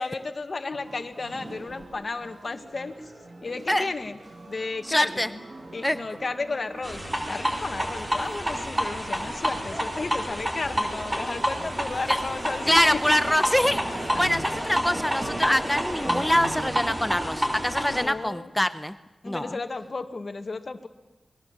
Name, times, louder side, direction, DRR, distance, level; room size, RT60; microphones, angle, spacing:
voice 1, 0.0-3.1 3.4-4.2 4.5-5.4 5.7-13.0 13.9-14.3 17.9-18.5 19.2-20.9, left 3 dB, 50° left, 8 dB, 2.1 m, -33 dB
sound 1, 0.7-18.5, right 2 dB, 40° right, 2.5 m, -43 dB
voice 2, 4.8-5.3 5.8-6.0 12.1-12.2 12.7-19.0 19.3-19.6, left 1 dB, 10° left, 12 dB, 0.9 m, -24 dB
sound 2, 6.8-18.0, equal, 15° right, 4.4 m, -29 dB
28.5 x 21.5 x 7.5 m, 1.0 s
wide cardioid pair, 100°, 0 cm